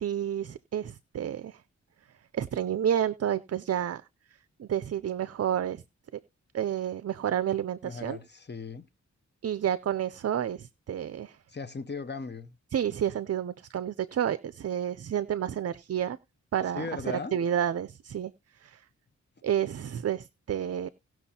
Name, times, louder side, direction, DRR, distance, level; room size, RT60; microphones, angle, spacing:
voice 1, 0.0-1.6 2.3-4.0 4.6-5.8 6.5-8.2 9.4-11.4 12.7-16.2 16.5-18.3 18.6-18.8 19.4-20.9, right 9 dB, 55° right, 0.5 m, -30 dB
voice 2, 7.8-8.9 11.5-12.5 16.7-17.4, left 4 dB, 35° left, 0.9 m, -37 dB
18.5 x 6.1 x 2.8 m
wide cardioid pair, 90°, 30 cm